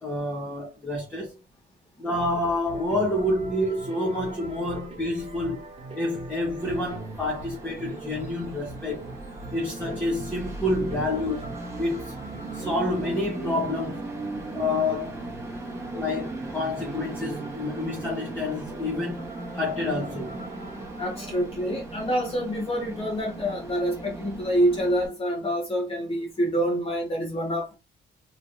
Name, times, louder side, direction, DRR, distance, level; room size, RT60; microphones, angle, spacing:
voice 1, 0.0-1.4 2.0-5.6 5.9-9.1 9.5-11.4 11.8-12.1 12.5-14.0 14.5-15.2 15.9-19.3 19.5-20.4, left 1 dB, 10° left, 1.1 m, -28 dB
sound 1, 2.1-21.4, right 3 dB, 35° right, 1.6 m, -43 dB
Train, 6.6-25.1, right 2 dB, 15° right, 1.1 m, -38 dB
voice 2, 21.0-27.8, equal, 30° left, 1.2 m, -27 dB
3.1 x 3.0 x 2.6 m
cardioid pair, 130°, 18 cm